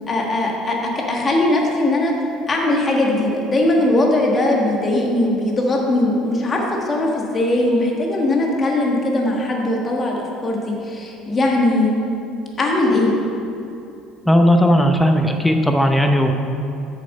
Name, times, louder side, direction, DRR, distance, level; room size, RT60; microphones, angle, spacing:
voice 1, 0.1-2.1 2.5-12.0 12.6-13.1, left 1 dB, 25° left, -1 dB, 1.5 m, -19 dB
voice 2, 14.3-16.3, equal, 5° left, 4 dB, 0.6 m, -16 dB
7.5 x 6.8 x 5.3 m, 2.7 s
cardioid pair, 120°, 0 cm